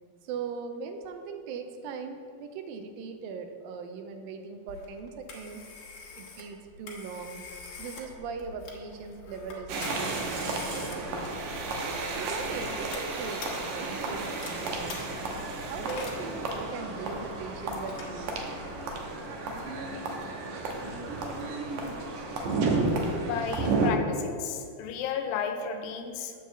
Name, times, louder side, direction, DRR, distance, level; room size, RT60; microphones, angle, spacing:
voice 1, 0.2-5.7 6.2-7.4 7.8-11.4 12.1-15.1 15.7-18.3, right 5 dB, 90° right, 6 dB, 2.4 m, -40 dB
Telephone, 4.7-18.9, left 3 dB, 65° left, 2.3 m, -45 dB
sound 1, 9.7-23.9, right 3 dB, 70° right, 2.0 m, -32 dB
voice 2, 23.2-26.3, left 7 dB, 85° left, 6 dB, 2.4 m, -33 dB
9.1 x 4.8 x 6.7 m, 2.2 s
omnidirectional pair, 4.1 m